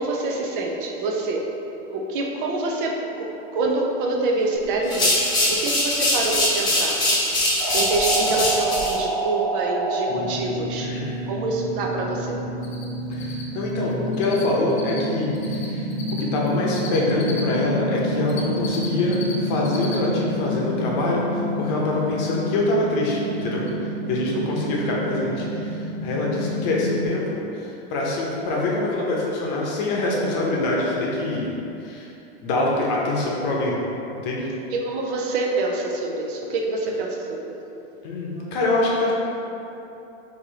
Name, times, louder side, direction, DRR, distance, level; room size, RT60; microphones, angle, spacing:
voice 1, 0.0-1.4 1.9-7.0 7.7-10.9 11.3-12.4 24.2-24.6 34.7-37.5 38.3-38.6, right 2 dB, 55° right, 0 dB, 0.6 m, -26 dB
sound 1, 4.8-9.0, left 1 dB, 15° left, 0.6 m, -22 dB
sound 2, 7.6-27.1, right 1 dB, 10° right, 1.3 m, -28 dB
voice 2, 10.8-11.2 13.1-31.5 31.8-32.1 32.4-33.8 34.1-34.5 38.0-39.1, left 2 dB, 40° left, -3 dB, 0.8 m, -25 dB
Cricket, 12.6-12.9 13.1-17.4 17.9-19.3 19.6-20.0 20.3-20.4 22.9-23.0 23.4-23.5 23.7-23.8, left 7 dB, 80° left, 0.9 m, -37 dB
4.4 x 2.8 x 3.9 m, 2.9 s
supercardioid pair, 165°, 32 cm